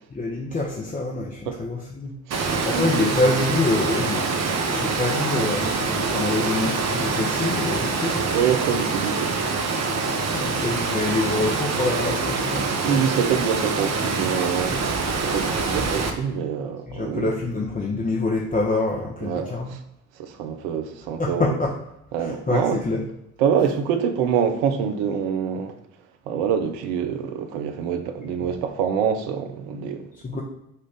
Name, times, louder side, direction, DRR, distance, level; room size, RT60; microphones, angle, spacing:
voice 1, 0.1-2.1 2.6-4.3 4.6-8.3 10.3-13.0 16.9-19.7 21.2-21.7 22.2-23.0 30.1-30.4, left 2 dB, 20° left, 0.8 m, -26 dB
Water, 2.3-16.1, right 4 dB, 40° right, 0.8 m, -25 dB
voice 2, 2.3-3.1 8.1-9.4 12.8-17.3 19.2-19.8 20.2-21.6 22.1-22.8 23.4-25.8 26.3-30.1, right 8 dB, 75° right, 0.7 m, -25 dB
5.5 x 2.5 x 3.4 m
hypercardioid pair, 45°, 39 cm